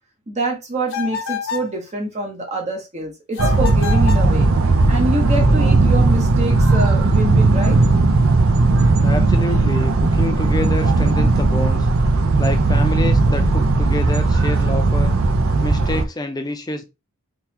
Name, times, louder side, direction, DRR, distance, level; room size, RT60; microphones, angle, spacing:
voice 1, 0.3-4.5 4.9-7.8, right 1 dB, 30° right, 0.9 m, -25 dB
sound 1, 0.9-1.7 3.3-4.3, left 7 dB, 55° left, 0.9 m, -28 dB
sound 2, 3.4-16.0, right 3 dB, 65° right, 0.6 m, -16 dB
voice 2, 9.0-11.9 12.4-15.1 15.6-16.8, left 1 dB, 20° left, 0.6 m, -27 dB
3.8 x 2.9 x 2.8 m
head